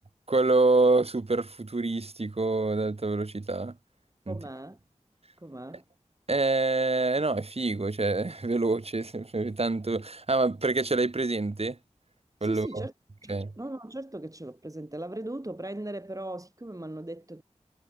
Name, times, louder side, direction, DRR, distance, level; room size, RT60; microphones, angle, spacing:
voice 1, 0.3-3.8 4.3-4.4 6.3-11.8 12.4-12.8 13.3-13.5, right 3 dB, 55° right, 2.2 m, -26 dB
voice 2, 4.3-4.8 5.4-5.8 12.4-12.9 13.2-17.4, right 1 dB, 30° right, 7.4 m, -38 dB
wide cardioid pair, 55°, 12 cm